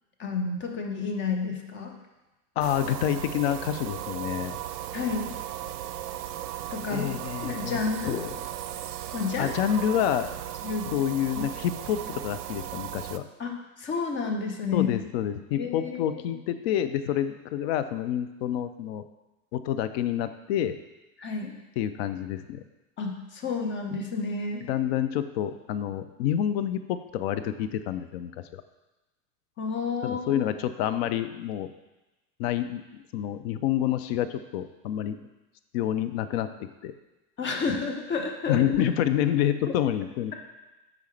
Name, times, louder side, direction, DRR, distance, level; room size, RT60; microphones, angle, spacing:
voice 1, 0.2-1.9 4.9-5.3 6.7-8.2 9.1-9.6 10.6-11.1 11.4-11.5 13.4-14.9 15.5-16.2 21.2-21.6 23.0-24.7 29.6-30.4 37.4-38.6, left 5 dB, 25° left, 3 dB, 0.9 m, -31 dB
voice 2, 2.6-4.6 6.9-8.3 9.4-10.3 10.9-13.3 14.7-19.0 19.5-20.8 21.8-22.6 24.7-28.6 30.0-31.7 32.4-35.2 35.7-36.5 36.8-36.9 38.5-40.3, left 10 dB, 45° left, 11 dB, 0.5 m, -28 dB
sound 1, 2.6-13.2, right 12 dB, 70° right, 0.6 m, -36 dB
8.0 x 4.9 x 3.3 m, 1.0 s
hypercardioid pair, 95°, 48 cm